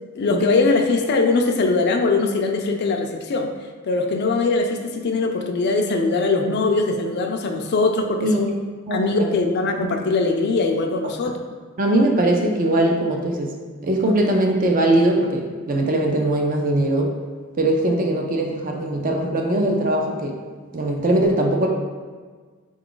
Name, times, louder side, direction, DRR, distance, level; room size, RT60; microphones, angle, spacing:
voice 1, 0.1-3.5 3.8-8.5 8.9-11.4, left 3 dB, 50° left, 4 dB, 0.4 m, -21 dB
voice 2, 8.9-9.4 9.8-9.9 11.8-13.5 13.8-17.1 17.6-20.4 20.7-21.7, right 1 dB, 40° right, 1 dB, 0.4 m, -21 dB
3.9 x 2.4 x 3.7 m, 1.5 s
head